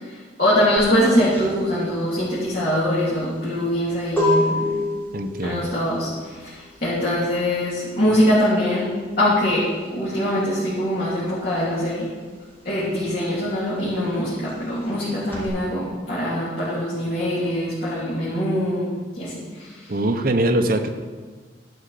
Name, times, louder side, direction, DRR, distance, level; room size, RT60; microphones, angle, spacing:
voice 1, 0.1-4.7 5.4-6.6 6.8-8.9 9.2-12.1 12.6-19.9, equal, 50° left, -10 dB, 3.0 m, -23 dB
sound 1, 0.8-11.0 11.3-15.5, left 1 dB, 10° left, 3.8 m, -28 dB
voice 2, 5.1-5.7 19.9-20.9, right 1 dB, 50° right, 6 dB, 0.8 m, -22 dB
12.5 x 5.6 x 6.5 m, 1.5 s
head